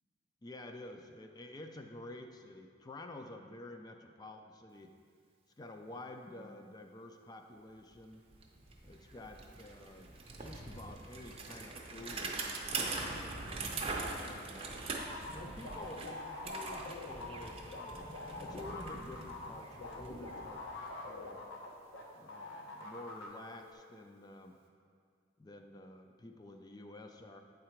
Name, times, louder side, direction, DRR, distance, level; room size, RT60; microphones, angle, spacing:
voice 1, 0.4-4.9 5.6-8.2 8.8-14.8 15.3-18.1 18.4-20.7 21.0-21.5 22.1-24.6 25.4-27.4, left 2 dB, 20° left, 5 dB, 0.3 m, -50 dB
Bicycle, 7.9-8.0 8.3-21.2, right 3 dB, 30° right, 0.6 m, -43 dB
sound 1, 12.8-23.7, left 2 dB, 75° right, 0.5 m, -63 dB
sound 2, 15.0-22.0 22.3-23.3, left 2 dB, 70° left, 0.9 m, -44 dB
8.6 x 3.8 x 4.4 m, 2.1 s
head